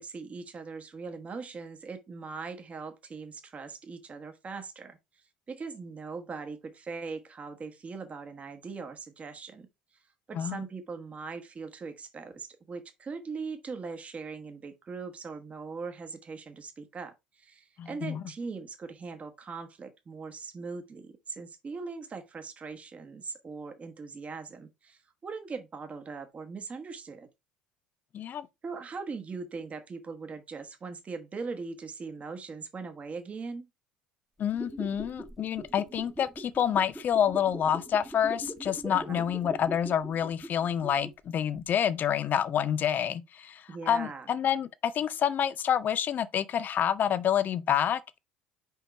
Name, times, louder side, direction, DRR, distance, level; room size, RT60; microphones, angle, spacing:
voice 1, 0.0-5.0 5.5-9.7 10.3-27.3 28.6-33.7 38.9-39.2 43.7-44.3, right 4 dB, 30° right, 1.3 m, -40 dB
voice 2, 17.8-18.2 28.1-28.5 34.4-48.2, left 9 dB, 40° left, 0.6 m, -28 dB
sound 1, 34.4-41.3 41.6-41.7, right 1 dB, 10° right, 1.2 m, -42 dB
5.1 x 4.6 x 4.5 m
figure-of-eight pair, 60°, 4 cm